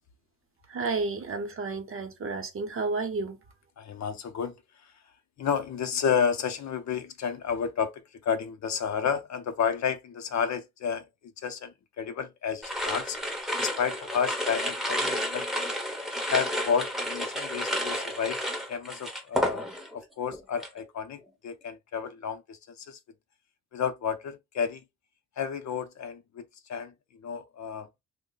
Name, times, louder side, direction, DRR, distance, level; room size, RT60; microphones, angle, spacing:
voice 1, 0.7-3.4, right 3 dB, 40° right, 0.7 m, -31 dB
voice 2, 3.8-4.9 5.4-11.1 11.4-13.2 13.6-15.5 16.3-18.4 18.7-23.0 23.7-24.8 25.4-27.9, left 7 dB, 55° left, 0.5 m, -31 dB
sound 1, 12.6-20.0 20.3-20.8, equal, ahead, 0.6 m, -31 dB
3.1 x 2.1 x 3.7 m
wide cardioid pair, 155°, 33 cm